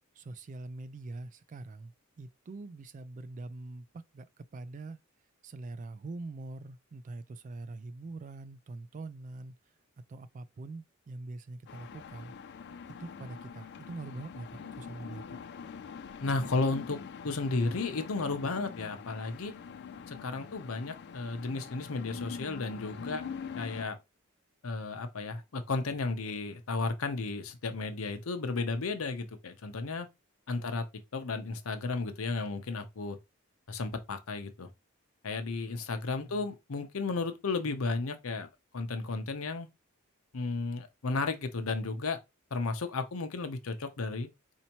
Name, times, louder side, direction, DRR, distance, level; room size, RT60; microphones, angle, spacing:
voice 1, 0.2-3.9 4.1-4.3 4.5-5.0 5.4-9.5 10.1-12.3 13.0-15.4 30.6-30.8 36.2-36.3, right 2 dB, 40° right, 0.3 m, -43 dB
sound 1, 11.7-23.8, left 6 dB, 55° left, 0.3 m, -44 dB
voice 2, 16.2-17.0 17.2-19.5 20.1-23.3 23.6-24.0 24.6-30.1 30.5-30.8 31.1-33.2 33.7-34.7 35.2-38.5 38.7-39.7 40.3-42.2 42.5-44.3, left 3 dB, 75° left, 0.7 m, -33 dB
4.4 x 2.7 x 2.9 m
head